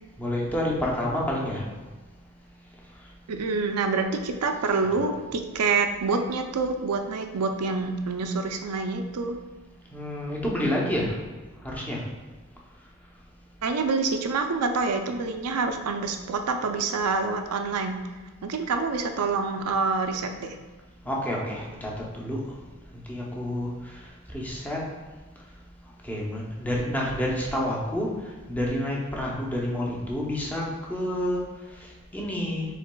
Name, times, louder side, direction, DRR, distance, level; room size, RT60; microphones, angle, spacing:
voice 1, 0.2-1.6 4.9-5.0 9.9-11.1 11.6-12.0 21.0-22.4 23.1-23.7 24.3-24.8 26.0-28.1 28.5-31.4 32.1-32.7, left 1 dB, 10° left, -3 dB, 0.7 m, -28 dB
voice 2, 3.3-9.4 13.6-18.0 18.4-20.6, right 4 dB, 85° right, 6 dB, 0.5 m, -27 dB
5.7 x 3.9 x 2.2 m, 1.2 s
head